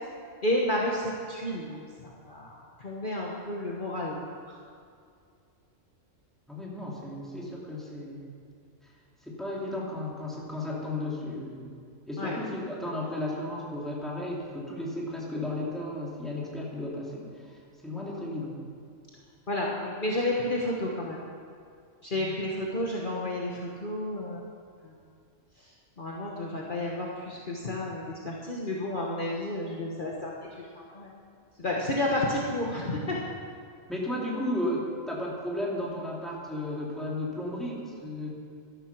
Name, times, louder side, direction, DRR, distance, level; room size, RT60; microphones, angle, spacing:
voice 1, 0.4-1.8 2.2-4.2 4.5-4.6 12.2-12.3 19.5-21.2 22.0-24.4 24.8-24.9 26.0-31.1 31.6-33.2, left 1 dB, 40° left, -3 dB, 1.4 m, -31 dB
voice 2, 6.5-8.2 9.2-11.8 12.1-18.6 22.1-22.3 33.9-38.3, left 1 dB, ahead, -5 dB, 2.7 m, -34 dB
12.5 x 11.5 x 6.0 m, 2.3 s
omnidirectional pair, 1.3 m